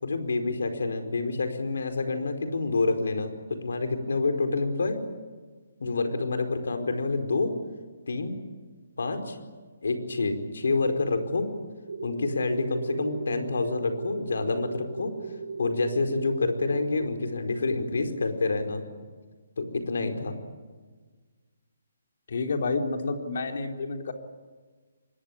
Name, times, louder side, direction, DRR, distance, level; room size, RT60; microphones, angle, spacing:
voice 1, 0.0-5.0 5.8-7.5 8.1-8.3 9.0-9.4 9.8-11.5 12.0-15.1 15.6-18.8 19.6-20.3, left 3 dB, 80° left, 7 dB, 4.8 m, -28 dB
sound 1, 11.9-16.9, right 4 dB, 75° right, 4.6 m, -37 dB
voice 2, 22.3-24.1, left 3 dB, 60° left, 4 dB, 3.6 m, -29 dB
25.0 x 21.5 x 8.6 m, 1.4 s
hypercardioid pair, 165°, 0 cm